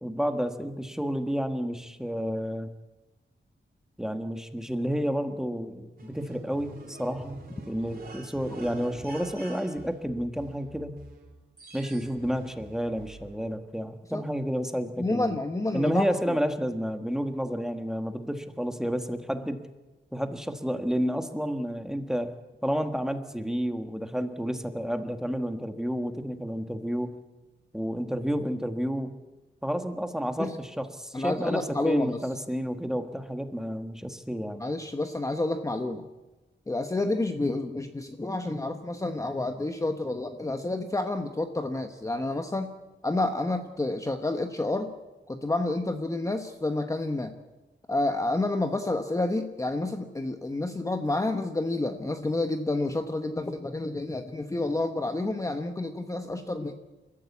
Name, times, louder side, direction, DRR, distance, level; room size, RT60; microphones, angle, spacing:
voice 1, 0.0-2.7 4.0-7.4 7.7-11.0 11.7-15.3 15.7-19.7 20.1-22.4 22.6-27.1 27.7-29.2 29.6-34.7, equal, 5° right, 7 dB, 1.5 m, -30 dB
sound 1, 6.0-13.3, right 3 dB, 50° right, 4.0 m, -46 dB
voice 2, 15.0-16.1 30.4-30.6 31.1-32.2 34.6-36.0 36.7-42.8 43.0-44.9 45.3-47.4 47.9-56.7, left 2 dB, 15° left, 6 dB, 1.1 m, -29 dB
29.0 x 14.5 x 8.4 m, 1.1 s
wide cardioid pair, 170°, 20 cm